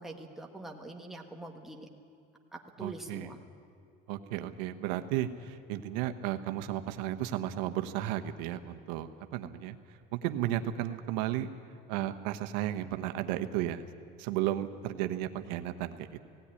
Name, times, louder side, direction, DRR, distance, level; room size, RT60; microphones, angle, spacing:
voice 1, 0.0-1.9 2.5-3.4, right 2 dB, ahead, 0 dB, 1.4 m, -44 dB
voice 2, 2.8-3.3 4.1-11.5 11.9-13.9 14.2-16.2, right 12 dB, 85° right, 8 dB, 1.1 m, -34 dB
17.5 x 16.5 x 9.9 m, 2.4 s
cardioid pair, 160°, 21 cm